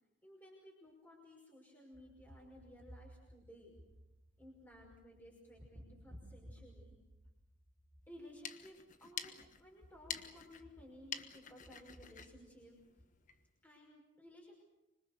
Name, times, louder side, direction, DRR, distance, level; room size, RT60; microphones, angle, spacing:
voice 1, 0.2-3.8 4.4-6.9 8.1-12.8 13.6-14.5, equal, 10° left, -3 dB, 5.6 m, -56 dB
Rubbing Drum Sticks Manipulation, 8.1-13.5, left 7 dB, 45° left, 1.3 m, -49 dB
25.5 x 25.5 x 6.7 m, 0.98 s
head